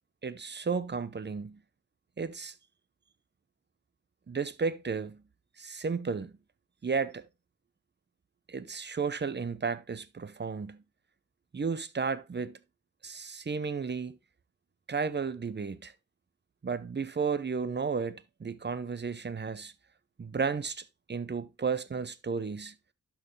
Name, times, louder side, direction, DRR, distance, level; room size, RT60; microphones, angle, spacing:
voice 1, 0.2-1.6 2.2-2.5 4.3-5.2 5.6-6.3 6.8-7.3 8.5-10.8 11.5-12.6 13.0-14.2 14.9-15.9 16.6-19.7 20.2-22.7, right 5 dB, 35° right, 0.7 m, -33 dB
11.5 x 4.6 x 3.2 m
wide cardioid pair, 85°, 31 cm